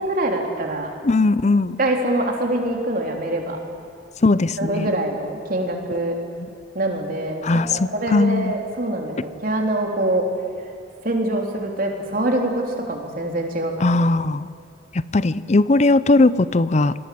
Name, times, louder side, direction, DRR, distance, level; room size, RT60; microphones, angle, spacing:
voice 1, 0.0-0.9 1.8-3.6 4.6-6.2 6.8-7.6 7.9-10.3 11.0-13.7, right 1 dB, 50° right, 2 dB, 3.5 m, -24 dB
voice 2, 1.0-1.8 4.2-4.9 7.4-8.5 13.8-14.5 14.9-16.9, left 2 dB, 40° left, 17 dB, 0.6 m, -18 dB
26.5 x 20.5 x 7.8 m, 2.3 s
head